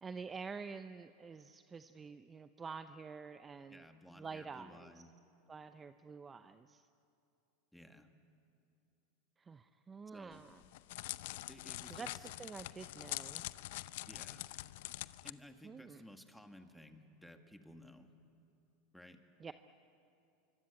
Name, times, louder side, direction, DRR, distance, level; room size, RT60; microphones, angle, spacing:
voice 1, 0.0-3.9 4.1-4.9 5.5-6.9 9.4-10.6 11.9-12.1 12.4-13.4 15.6-16.0 19.4-19.5, right 5 dB, 20° right, 10 dB, 0.7 m, -48 dB
voice 2, 3.7-5.1 7.7-8.1 10.1-10.4 11.5-12.3 14.1-14.5 15.2-18.1 18.9-19.2, left 1 dB, ahead, 5 dB, 2.0 m, -56 dB
Crackle, 10.3-15.3, left 17 dB, 70° left, 0.6 m, -44 dB
25.5 x 24.0 x 8.4 m, 2.8 s
hypercardioid pair, 110°, 0 cm